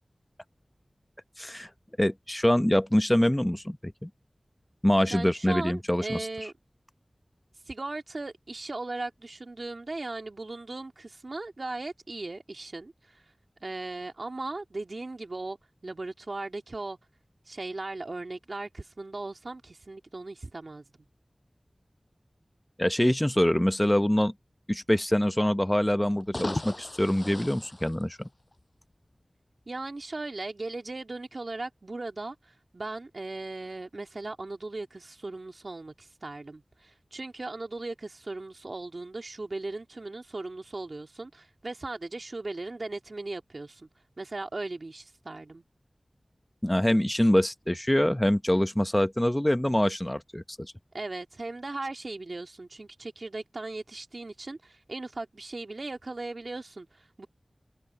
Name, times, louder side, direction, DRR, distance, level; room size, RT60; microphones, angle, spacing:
voice 1, 1.4-1.7 2.0-4.1 4.8-6.3 22.8-24.3 24.7-28.3 46.6-50.7, left 1 dB, 15° left, 1.0 m, -25 dB
voice 2, 5.1-6.5 7.7-13.2 13.6-15.6 15.8-17.0 17.5-20.9 29.7-43.9 44.2-45.6 50.9-57.3, right 2 dB, 65° right, 2.8 m, -38 dB
sound 1, 26.1-28.7, left 2 dB, 45° left, 5.9 m, -37 dB
wide cardioid pair, 40°, 0 cm